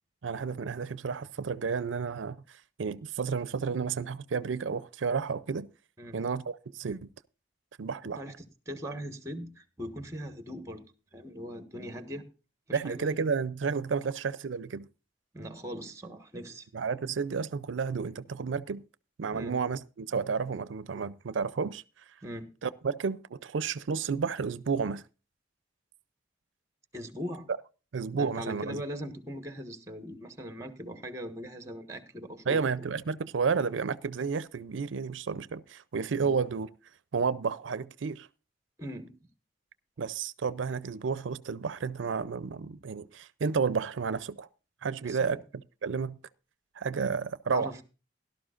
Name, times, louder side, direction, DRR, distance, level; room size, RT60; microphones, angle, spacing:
voice 1, 0.2-5.7 6.1-7.1 7.8-8.2 12.7-14.9 16.7-18.8 19.2-21.8 22.6-25.0 27.9-28.8 32.5-36.7 37.1-38.3 40.0-44.5 44.8-46.2 46.8-47.7, right 5 dB, 85° right, 0.5 m, -31 dB
voice 2, 8.2-10.8 11.1-12.3 12.7-13.1 15.3-16.7 19.3-19.6 22.2-22.6 26.9-27.5 28.1-32.9 36.2-36.4 38.8-39.2 45.0-45.4 47.5-47.8, equal, 15° right, 1.4 m, -40 dB
17.5 x 12.0 x 2.5 m
head